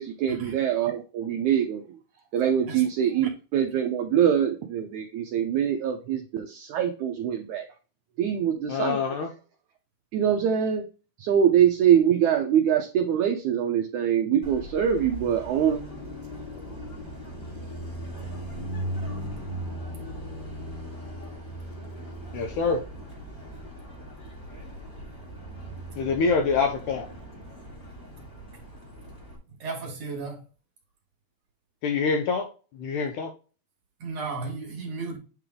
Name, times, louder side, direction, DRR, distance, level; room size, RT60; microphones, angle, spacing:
voice 1, 0.0-2.0 2.3-7.7 8.2-9.3 10.1-10.9 11.2-15.8, right 9 dB, 80° right, 1.7 m, -24 dB
voice 2, 8.7-9.3 22.3-22.8 26.0-27.1 31.8-32.5 32.8-33.3, left 5 dB, 75° left, 1.8 m, -25 dB
Car passing by, 14.4-29.4, equal, 20° left, 1.5 m, -38 dB
voice 3, 29.6-30.4 34.0-35.2, right 4 dB, 55° right, 2.3 m, -34 dB
9.0 x 3.4 x 3.7 m
omnidirectional pair, 4.2 m